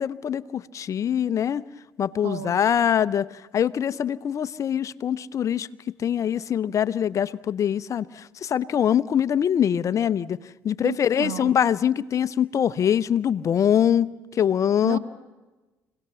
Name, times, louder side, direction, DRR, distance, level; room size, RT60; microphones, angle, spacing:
voice 1, 0.0-1.6 2.0-5.7 6.0-10.4 10.6-15.0, left 9 dB, 45° left, 17 dB, 0.7 m, -23 dB
voice 2, 2.2-2.6 10.8-11.5 14.8-15.0, right 13 dB, 85° right, 10 dB, 1.6 m, -33 dB
26.5 x 18.0 x 6.9 m, 1.1 s
supercardioid pair, 70°, 7 cm